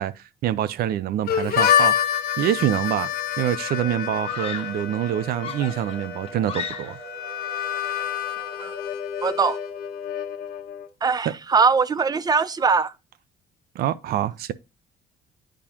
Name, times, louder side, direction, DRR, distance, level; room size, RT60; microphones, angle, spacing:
voice 1, 0.0-1.9 2.4-3.1 3.4-7.0 11.2-11.3 13.7-14.5, right 11 dB, 65° right, 0.6 m, -25 dB
Harmonica, 1.3-10.9, left 9 dB, 65° left, 1.0 m, -27 dB
Screaming, 3.0-3.2 4.2-4.9 5.4-7.2, left 6 dB, 35° left, 1.3 m, -35 dB
sound 1, 3.7-9.0, right 4 dB, 85° right, 2.5 m, -42 dB
voice 2, 9.2-9.6 11.0-12.9, right 5 dB, 25° right, 0.5 m, -21 dB
9.0 x 4.9 x 2.9 m
cardioid pair, 110°, 17 cm